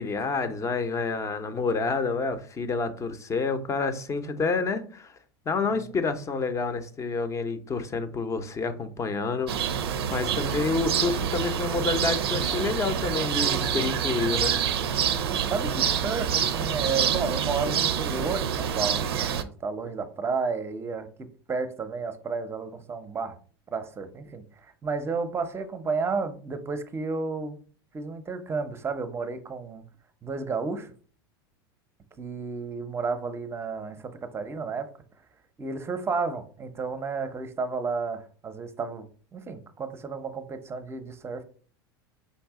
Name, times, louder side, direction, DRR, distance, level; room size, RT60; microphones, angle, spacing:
voice 1, 0.0-5.2 5.5-9.5 10.1-14.6, left 4 dB, 25° left, 0.7 m, -28 dB
sound 1, 9.5-19.4, right 8 dB, 85° right, 0.5 m, -27 dB
voice 2, 15.5-23.4 23.7-27.6 27.9-29.8 30.2-30.9 32.2-34.9 35.6-39.1 39.3-41.4, right 4 dB, 20° right, 0.7 m, -32 dB
5.4 x 2.6 x 3.6 m
hypercardioid pair, 100°, 13 cm